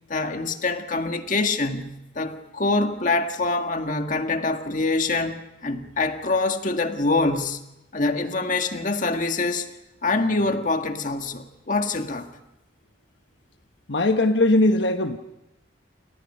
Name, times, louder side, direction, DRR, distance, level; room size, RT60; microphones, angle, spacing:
voice 1, 0.1-7.6 7.9-9.7 10.0-12.3, left 3 dB, 45° left, 6 dB, 1.7 m, -25 dB
voice 2, 13.9-15.2, left 2 dB, 70° left, 6 dB, 1.2 m, -19 dB
29.5 x 28.0 x 5.6 m, 0.92 s
head